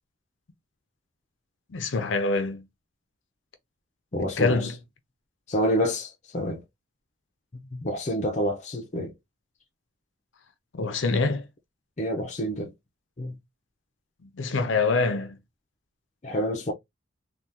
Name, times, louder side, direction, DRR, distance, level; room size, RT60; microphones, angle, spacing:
voice 1, 1.7-2.6 4.4-4.7 10.7-11.4 14.4-15.3, left 3 dB, 75° left, 0.6 m, -25 dB
voice 2, 4.1-4.7 5.5-6.6 7.6-9.1 10.8-10.9 12.0-12.7 13.2-13.4 16.2-16.7, equal, 35° left, 0.6 m, -28 dB
3.5 x 2.3 x 2.7 m
head